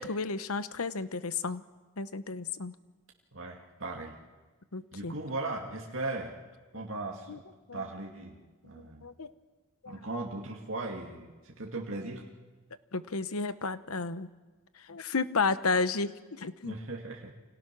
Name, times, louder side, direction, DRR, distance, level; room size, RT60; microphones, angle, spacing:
voice 1, 0.0-1.6 2.0-2.7 4.7-5.1 6.7-6.8 7.3-7.4 7.7-7.8 8.7-9.3 9.8-10.0 12.9-14.3 14.7-16.8, left 4 dB, 85° left, 13 dB, 1.0 m, -32 dB
voice 2, 3.3-4.2 4.9-6.4 6.7-7.4 7.7-8.4 8.6-9.1 9.9-12.2 16.6-17.3, right 2 dB, 65° right, -1 dB, 2.4 m, -38 dB
29.5 x 26.5 x 6.1 m, 1.2 s
head